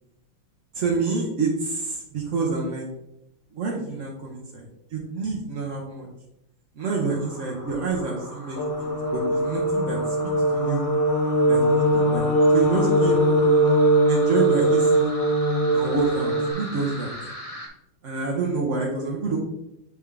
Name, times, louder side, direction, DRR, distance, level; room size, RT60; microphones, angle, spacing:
voice 1, 0.7-2.9 3.5-6.1 6.8-10.8 11.5-12.3 12.5-13.3 14.1-15.1 15.7-17.1 18.0-19.4, right 4 dB, 60° right, -2 dB, 0.8 m, -28 dB
sound 1, 6.8-17.7, left 1 dB, 30° left, 0.6 m, -39 dB
sound 2, 8.6-16.5, right 1 dB, 65° left, 1.6 m, -21 dB
7.7 x 3.6 x 3.4 m, 0.85 s
omnidirectional pair, 2.3 m